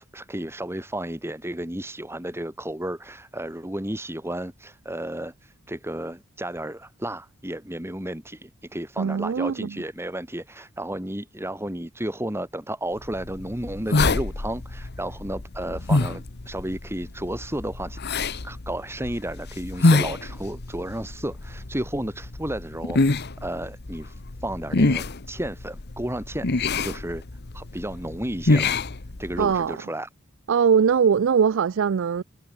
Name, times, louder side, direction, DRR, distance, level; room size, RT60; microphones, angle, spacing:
voice 1, 0.0-27.2 27.5-28.7 29.2-30.1, right 1 dB, 10° right, 3.0 m, -33 dB
voice 2, 9.0-9.7 29.4-29.8 30.5-32.2, right 7 dB, 60° right, 0.4 m, -21 dB
sound 1, 13.0-29.6, left 2 dB, 50° left, 1.1 m, -27 dB
head